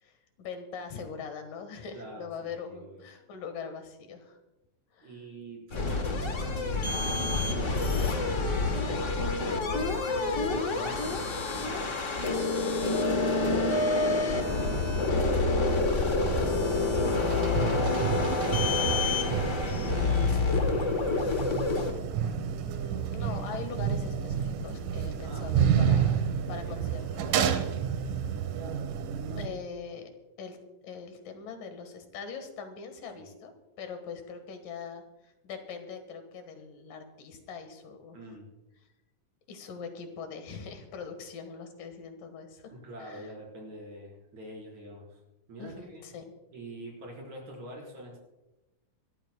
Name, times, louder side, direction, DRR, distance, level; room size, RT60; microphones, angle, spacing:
voice 1, 0.0-4.4 4.9-5.1 22.7-27.7 29.3-30.1 30.4-30.6 30.8-38.2 39.5-42.7 43.0-43.3 45.6-46.3, left 5 dB, 90° left, 6 dB, 3.3 m, -42 dB
voice 2, 1.9-3.0 5.0-7.2 7.5-12.1 12.8-22.4 25.2-25.7 26.5-26.8 29.4-29.6 33.2-33.3 38.1-38.5 42.7-45.2 45.5-46.0 46.5-48.2, right 1 dB, 60° right, -2 dB, 6.1 m, -45 dB
sound 1, 5.7-21.9, left 3 dB, 50° left, 0.8 m, -27 dB
sound 2, 16.0-29.5, right 8 dB, 85° right, 2.7 m, -30 dB
25.5 x 13.5 x 2.3 m, 1.0 s
omnidirectional pair, 3.7 m